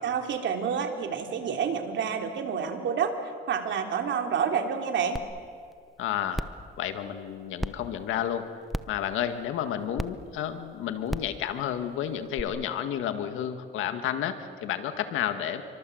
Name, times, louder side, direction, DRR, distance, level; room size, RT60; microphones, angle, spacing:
voice 1, 0.0-5.2, right 6 dB, 70° right, 4 dB, 3.2 m, -29 dB
sound 1, 5.2-5.3 5.7-5.8 6.3-6.6 7.6-7.7 8.7-9.0 10.0-10.1 11.1-11.3 12.4-12.5, equal, ahead, 0.9 m, -31 dB
voice 2, 6.0-6.4 6.8-8.5 8.9-15.6, left 10 dB, 90° left, 8 dB, 2.0 m, -31 dB
28.0 x 24.5 x 8.0 m, 2.2 s
cardioid pair, 90°, 20 cm